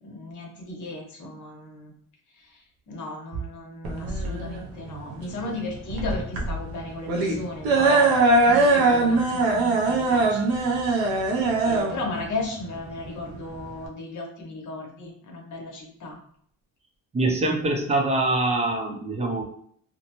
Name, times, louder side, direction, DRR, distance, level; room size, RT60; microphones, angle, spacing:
voice 1, 0.0-1.9 2.9-8.1 8.4-10.5 11.6-16.2, left 2 dB, 55° left, 0 dB, 0.9 m, -35 dB
Kalyani - Vali, 3.8-13.9, right 2 dB, 80° right, 0.7 m, -22 dB
voice 2, 17.1-19.4, right 2 dB, 20° right, 1 dB, 0.6 m, -24 dB
2.7 x 2.1 x 2.9 m, 0.63 s
cardioid pair, 120°, 36 cm